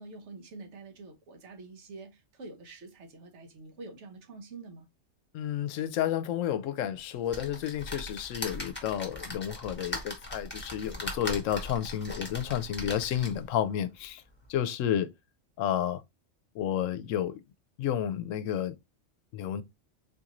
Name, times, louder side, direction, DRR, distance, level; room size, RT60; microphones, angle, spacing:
voice 1, 0.0-4.9, right 3 dB, 65° right, 1.2 m, -46 dB
voice 2, 5.3-14.2 14.5-15.1 15.6-16.0 16.5-17.4 17.8-18.8 19.3-19.6, left 10 dB, 80° left, 0.9 m, -31 dB
sound 1, 7.3-13.5 14.1-14.2 14.4-14.5, left 1 dB, 10° left, 1.0 m, -39 dB
4.2 x 2.5 x 2.9 m
omnidirectional pair, 1.3 m